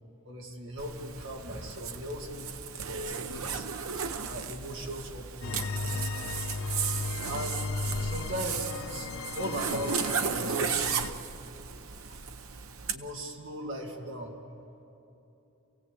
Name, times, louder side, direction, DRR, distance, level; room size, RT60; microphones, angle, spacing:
voice 1, 0.2-3.7 4.2-5.7 6.2-6.3 7.3-7.7 8.0-9.1 9.4-10.9 12.5-12.7 12.9-14.4, right 1 dB, 60° right, 0 dB, 2.6 m, -38 dB
Zipper (clothing), 0.8-13.0, right 6 dB, 80° right, 1.0 m, -35 dB
sound 1, 5.4-11.1, left 4 dB, 75° left, 0.5 m, -35 dB
27.5 x 16.5 x 8.5 m, 2.9 s
head